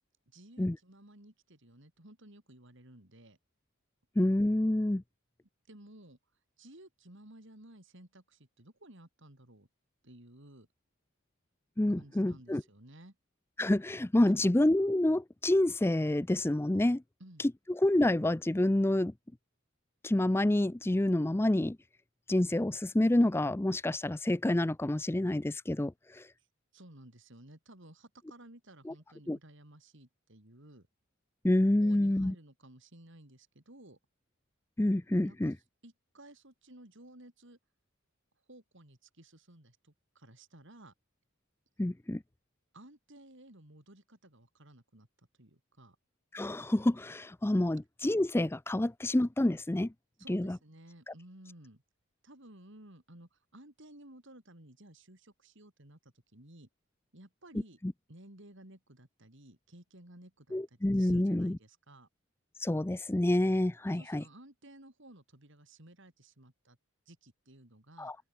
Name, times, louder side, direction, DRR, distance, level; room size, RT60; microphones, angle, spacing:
voice 1, 0.3-3.4 5.7-6.2 6.6-9.7 10.0-10.7 12.0-13.2 17.2-17.5 26.4-26.5 26.7-30.9 31.8-34.0 35.2-35.5 35.8-37.6 38.5-40.9 42.7-46.0 50.2-51.8 52.2-56.7 57.1-57.8 58.1-62.1 63.9-66.8 67.1-68.1, right 1 dB, 55° right, 3.8 m, -55 dB
voice 2, 4.2-5.0 11.8-12.6 13.6-17.0 17.4-19.1 20.0-21.8 22.3-26.3 28.9-29.0 29.3-29.4 31.4-32.3 34.8-35.6 41.8-42.2 46.3-49.9 50.3-50.6 51.1-51.2 57.8-57.9 60.5-61.6 62.6-64.2 68.0-68.2, left 1 dB, 10° left, 0.4 m, -28 dB
open air
head